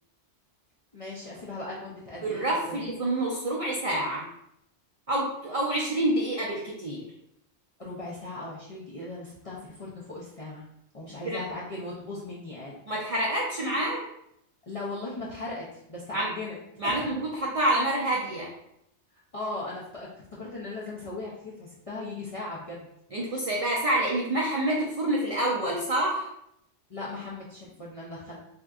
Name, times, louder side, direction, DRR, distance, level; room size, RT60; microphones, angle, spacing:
voice 1, 0.9-2.9 7.8-10.6 10.9-12.8 14.7-16.6 16.8-17.1 19.3-22.9 26.9-28.4, left 2 dB, 50° left, -6 dB, 0.4 m, -38 dB
voice 2, 2.2-4.2 5.1-7.1 11.2-11.4 12.9-14.0 16.1-16.3 16.8-18.5 23.1-26.3, right 1 dB, 60° right, -4 dB, 0.3 m, -27 dB
3.4 x 2.7 x 2.3 m, 0.77 s
omnidirectional pair, 1.3 m